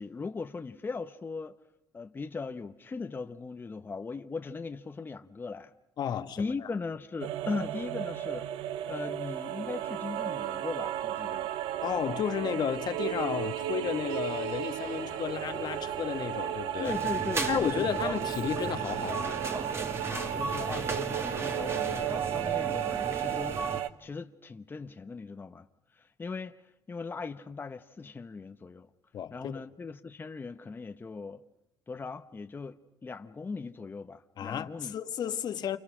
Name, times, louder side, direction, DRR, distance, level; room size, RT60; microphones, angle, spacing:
voice 1, 0.0-1.5 1.9-5.7 6.4-11.5 16.8-18.0 20.1-23.7 24.0-25.7 25.9-28.9 29.3-31.4 31.9-34.9, left 4 dB, 25° left, 1.1 m, -39 dB
voice 2, 6.0-6.7 11.8-17.0 17.5-19.4 29.1-29.5 34.4-35.8, left 9 dB, 55° left, 1.6 m, -33 dB
sound 1, 7.2-23.9, right 11 dB, 80° right, 1.0 m, -34 dB
sound 2, 13.0-22.6, left 11 dB, 75° left, 1.7 m, -55 dB
sound 3, 16.8-23.8, right 3 dB, 30° right, 2.3 m, -36 dB
29.0 x 29.0 x 6.3 m
cardioid pair, 100°, 9 cm